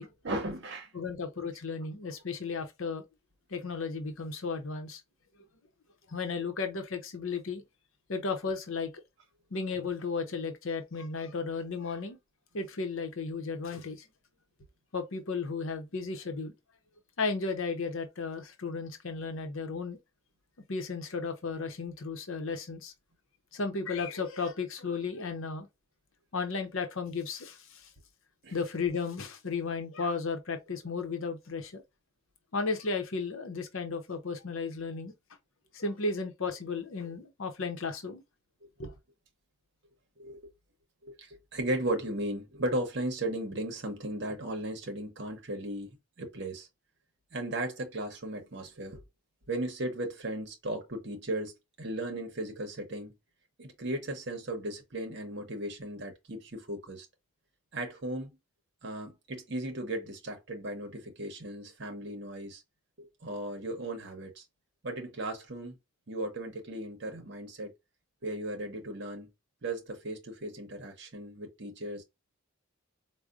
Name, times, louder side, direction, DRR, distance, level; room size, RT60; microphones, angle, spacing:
voice 1, 0.2-0.9 28.4-28.6 40.2-40.5 41.0-46.7 47.3-49.0 49.5-51.5 51.8-53.1 53.6-57.1 57.7-58.4 58.8-62.6 63.0-64.4 64.8-65.8 66.1-67.7 68.2-69.3 69.6-72.0, right 1 dB, 50° right, 0.8 m, -36 dB
voice 2, 0.9-3.0 3.5-5.0 6.1-7.6 8.1-8.9 9.5-12.2 12.5-14.1 14.9-16.5 17.2-20.0 20.7-22.9 23.5-25.7 26.3-27.9 28.5-31.8 32.5-35.1 35.7-38.2 38.8-38.9, left 4 dB, 70° left, 0.7 m, -34 dB
4.7 x 2.1 x 2.4 m
head